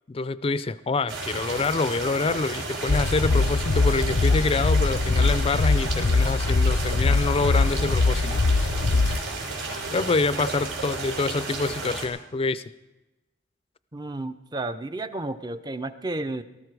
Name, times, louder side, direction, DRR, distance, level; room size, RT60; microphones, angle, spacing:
voice 1, 0.1-8.4 9.9-12.6, left 3 dB, 30° left, 15 dB, 0.4 m, -26 dB
sound 1, 1.1-12.1, right 3 dB, 85° right, 3.4 m, -33 dB
sound 2, 2.9-9.2, left 3 dB, 85° left, 0.6 m, -22 dB
voice 2, 13.9-16.4, right 2 dB, 20° right, 11 dB, 0.5 m, -32 dB
18.0 x 14.0 x 4.7 m, 1.0 s
head